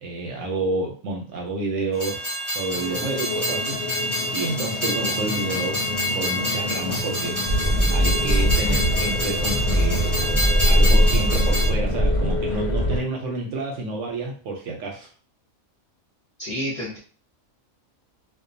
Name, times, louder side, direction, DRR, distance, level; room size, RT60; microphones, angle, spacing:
voice 1, 0.0-2.3 2.5-5.8 6.1-7.6 7.9-10.2 10.6-15.1, right 3 dB, 70° right, 0 dB, 0.9 m, -29 dB
Train, 1.9-11.7, equal, 10° left, 1.0 m, -27 dB
sound 1, 2.7-13.0, left 2 dB, 70° left, 0.9 m, -31 dB
sound 2, 7.5-13.0, equal, 35° right, 0.5 m, -21 dB
voice 2, 16.4-17.0, equal, 35° left, -6 dB, 0.7 m, -29 dB
2.4 x 2.2 x 2.5 m, 0.40 s
omnidirectional pair, 1.5 m